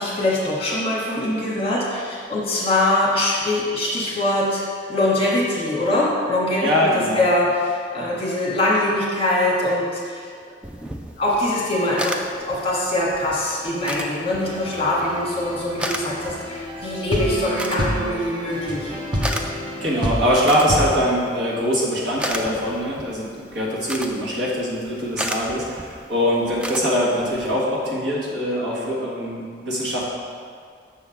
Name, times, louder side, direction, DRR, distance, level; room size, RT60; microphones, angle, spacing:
voice 1, 0.0-4.6 4.9-6.7 7.1-10.3 11.2-19.0, left 1 dB, 30° left, -5 dB, 1.5 m, -23 dB
voice 2, 6.6-7.2 19.8-30.0, equal, 70° right, -5 dB, 1.6 m, -23 dB
sound 1, 10.6-27.5, equal, 5° right, 0.3 m, -35 dB
sound 2, 14.4-20.9, equal, 25° right, 0.8 m, -29 dB
6.8 x 3.6 x 5.7 m, 2.2 s
head